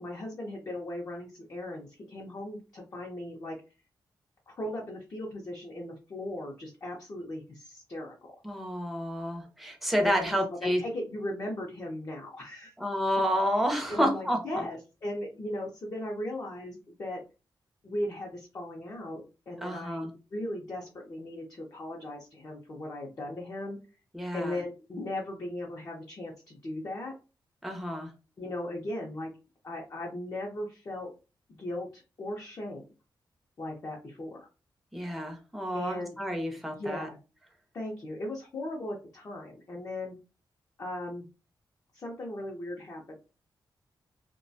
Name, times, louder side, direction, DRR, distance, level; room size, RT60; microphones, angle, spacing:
voice 1, 0.0-3.6 4.5-8.4 10.0-12.7 13.9-17.2 17.8-23.8 24.3-27.1 28.4-29.3 29.6-31.1 31.6-32.8 33.6-34.5 35.7-36.2 36.7-37.2 37.7-40.2 40.8-41.3 41.9-43.2, left 1 dB, 40° left, -2 dB, 0.6 m, -37 dB
voice 2, 8.4-10.8 12.8-14.6 19.6-20.1 24.1-24.6 27.6-28.1 34.9-37.1, equal, ahead, 2 dB, 0.6 m, -30 dB
2.3 x 2.2 x 2.6 m, 0.31 s
wide cardioid pair, 145°, 8 cm